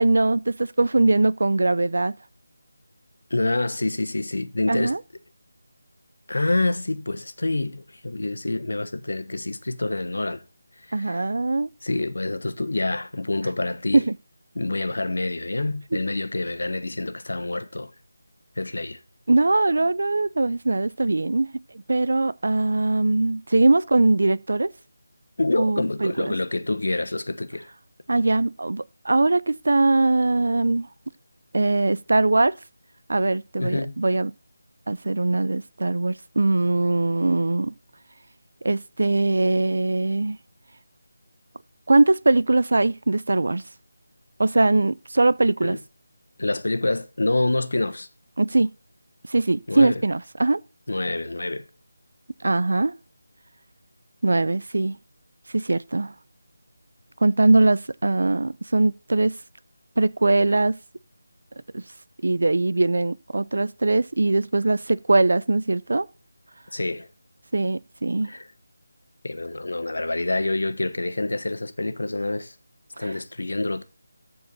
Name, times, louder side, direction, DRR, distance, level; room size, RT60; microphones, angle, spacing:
voice 1, 0.0-2.1 4.7-5.0 10.9-11.7 13.9-14.1 19.3-21.5 21.9-24.7 25.5-26.3 28.1-30.9 31.5-32.5 33.1-34.3 34.9-37.7 38.6-40.4 41.9-43.6 44.4-45.8 48.4-48.7 49.3-50.6 52.4-52.9 54.2-55.0 55.5-56.1 57.2-59.3 60.0-60.8 61.7-61.8 62.2-66.1 67.5-68.3 73.0-73.1, right 2 dB, 70° right, 0.5 m, -21 dB
voice 2, 3.3-4.9 6.3-10.4 10.9-11.2 11.8-14.0 14.5-17.9 18.6-19.0 25.4-27.7 33.6-34.0 45.6-45.8 46.4-48.1 49.7-50.0 50.9-51.7 66.7-67.1 68.3-68.5 69.2-72.5 73.0-73.8, left 2 dB, 80° left, 1.2 m, -27 dB
14.0 x 4.7 x 4.0 m
figure-of-eight pair, 170°, 0 cm